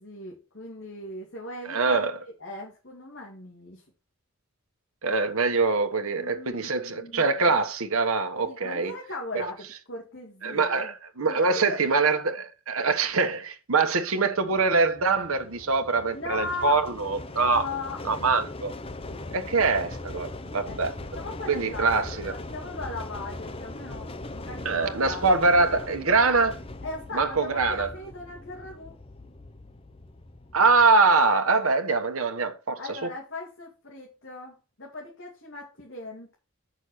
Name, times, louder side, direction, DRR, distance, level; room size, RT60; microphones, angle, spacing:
voice 1, 0.0-3.8 6.2-7.2 8.4-10.9 11.3-11.8 16.1-16.9 17.4-18.0 19.2-19.5 20.6-20.9 21.1-25.3 26.8-28.9 32.8-36.3, left 2 dB, 55° left, 2.6 m, -39 dB
voice 2, 1.6-2.2 5.0-8.9 9.3-9.5 10.4-17.7 18.0-18.7 19.3-20.9 21.5-22.4 24.6-26.6 27.1-27.9 30.5-33.1, right 4 dB, 75° right, 1.3 m, -24 dB
sound 1, 14.4-30.9, left 2 dB, 25° left, 0.7 m, -40 dB
7.4 x 6.3 x 6.4 m
head